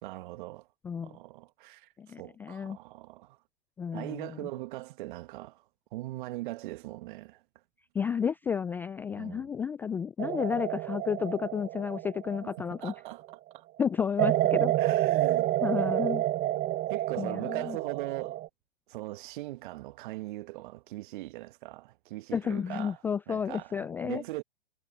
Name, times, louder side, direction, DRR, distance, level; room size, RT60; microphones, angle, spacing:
voice 1, 0.0-0.7 1.0-1.9 2.2-3.4 3.9-5.6 5.9-7.4 9.1-9.5 12.8-13.2 13.5-13.7 14.8-15.6 16.9-18.4 18.9-23.0 23.3-24.4, right 18 dB, 50° right, 1.7 m, -40 dB
voice 2, 0.8-1.2 2.0-2.8 3.8-4.5 7.9-12.9 13.8-14.7 15.6-16.2 17.2-17.8 22.3-24.2, left 7 dB, 5° left, 0.3 m, -32 dB
sound 1, 10.2-13.2 14.2-18.5, right 14 dB, 25° right, 1.2 m, -29 dB
hypercardioid pair, 115°, 32 cm